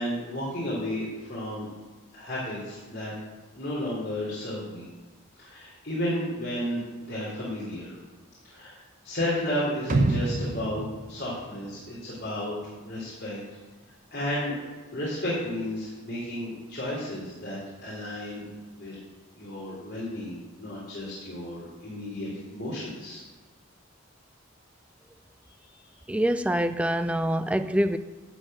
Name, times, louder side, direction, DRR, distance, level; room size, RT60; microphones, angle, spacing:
voice 1, 0.0-1.7 2.1-3.1 3.6-4.9 5.4-8.0 8.4-13.4 14.1-14.6 14.9-18.4 18.7-18.9 19.3-23.2 25.4-25.8, left 1 dB, 50° left, -8 dB, 3.4 m, -33 dB
sound 1, 9.9-12.1 12.4-12.5, right 2 dB, 40° right, 0.8 m, -28 dB
voice 2, 26.1-28.0, right 1 dB, 5° right, 11 dB, 0.4 m, -25 dB
12.5 x 4.6 x 7.6 m, 1.3 s
head